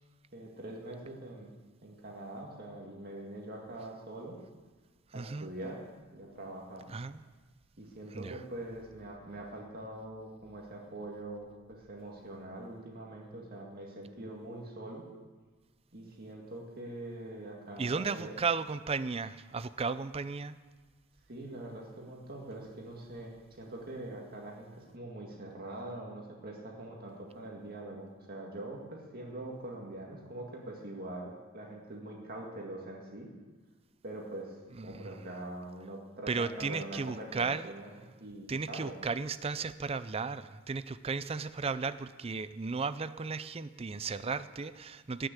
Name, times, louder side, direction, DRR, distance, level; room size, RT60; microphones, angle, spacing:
voice 1, 0.3-1.5 1.8-4.4 5.1-5.8 6.1-6.8 7.8-15.0 15.9-18.4 21.3-33.3 34.0-39.0, right 1 dB, 45° right, -1 dB, 2.0 m, -43 dB
voice 2, 5.1-5.5 6.9-7.2 8.1-8.4 17.8-20.6 34.8-35.1 36.3-37.7 38.5-45.3, right 4 dB, 30° right, 14 dB, 0.4 m, -35 dB
19.0 x 6.5 x 8.3 m, 1.4 s
head